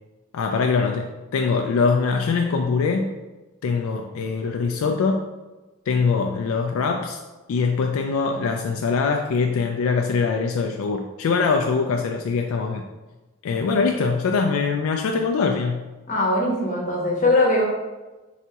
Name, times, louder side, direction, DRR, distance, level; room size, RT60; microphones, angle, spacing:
voice 1, 0.3-3.1 3.6-5.2 5.9-7.2 7.5-12.9 13.4-15.9, left 4 dB, 70° left, 3 dB, 0.3 m, -23 dB
voice 2, 16.1-17.6, left 2 dB, 35° left, -2 dB, 0.9 m, -20 dB
4.1 x 3.4 x 2.8 m, 1.1 s
head